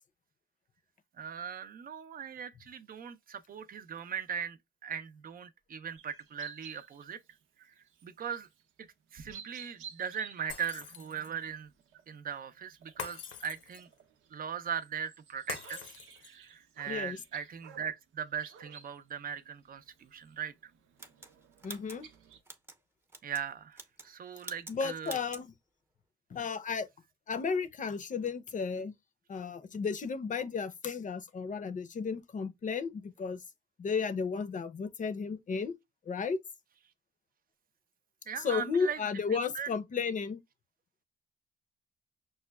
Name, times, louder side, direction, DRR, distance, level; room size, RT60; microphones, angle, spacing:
voice 1, 1.2-7.2 7.6-7.7 8.0-8.5 8.8-11.7 12.1-13.9 14.3-15.9 16.2-20.7 23.2-25.2 38.3-39.0 39.3-39.7, right 8 dB, 45° right, 0.6 m, -39 dB
sound 1, 6.0-7.3 7.6-8.1 8.4-8.6 9.1-18.0 18.4-22.4, right 7 dB, 90° right, 0.7 m, -54 dB
Shatter, 10.5-11.4 13.0-14.0 15.5-16.5, left 7 dB, 80° left, 0.7 m, -44 dB
voice 2, 16.9-17.2 21.6-22.1 24.7-25.5 26.3-26.9 27.3-28.9 29.3-33.4 33.8-35.7 36.1-36.4 38.4-40.4, left 5 dB, 40° left, 0.6 m, -33 dB
sound 2, 21.0-22.8 23.1-23.5 23.7-24.1 24.4-24.8 25.0-25.5, right 2 dB, 10° right, 0.7 m, -47 dB
6.1 x 2.2 x 2.2 m
cardioid pair, 90°, 20 cm